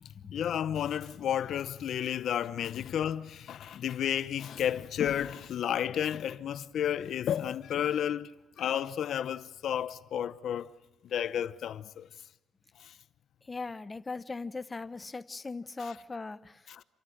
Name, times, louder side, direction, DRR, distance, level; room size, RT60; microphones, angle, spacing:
voice 1, 0.3-10.7 11.0-12.1 12.8-13.0 15.8-15.9 16.7-16.8, left 9 dB, 65° left, 0.9 m, -32 dB
voice 2, 13.5-16.6, left 3 dB, 20° left, 0.8 m, -39 dB
28.0 x 14.0 x 10.0 m
cardioid pair, 150°, 0 cm